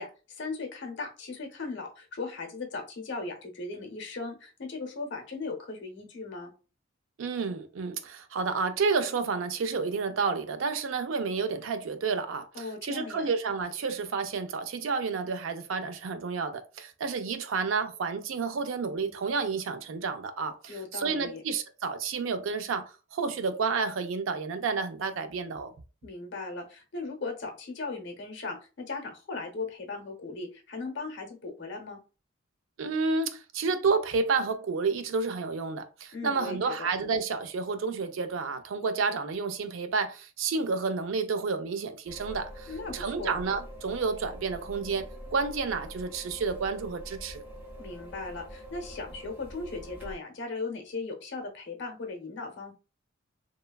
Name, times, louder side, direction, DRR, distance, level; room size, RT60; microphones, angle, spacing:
voice 1, 0.0-6.5 12.5-13.3 20.7-21.4 26.0-32.0 36.1-36.9 42.7-43.3 47.8-52.7, left 3 dB, 60° left, 0.7 m, -38 dB
voice 2, 7.2-25.7 32.8-47.4, right 4 dB, 75° right, 0.4 m, -30 dB
sound 1, 42.1-50.1, equal, 10° right, 0.8 m, -44 dB
2.9 x 2.2 x 2.2 m
head